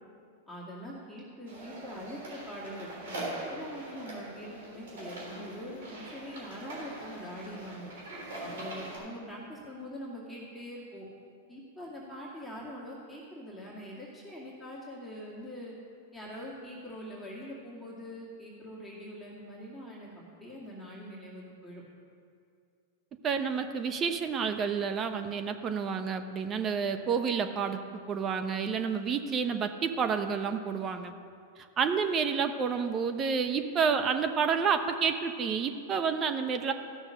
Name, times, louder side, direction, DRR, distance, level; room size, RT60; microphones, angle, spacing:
voice 1, 0.5-7.9 8.4-11.1 11.5-15.7 16.1-21.8, equal, 5° left, -7 dB, 2.1 m, -43 dB
sound 1, 1.5-9.0, right 1 dB, 80° right, 3.5 m, -42 dB
voice 2, 23.2-27.8 28.1-31.1 31.6-36.7, right 6 dB, 30° right, 8 dB, 0.8 m, -29 dB
14.0 x 6.4 x 6.3 m, 2.4 s
hypercardioid pair, 115°, 0 cm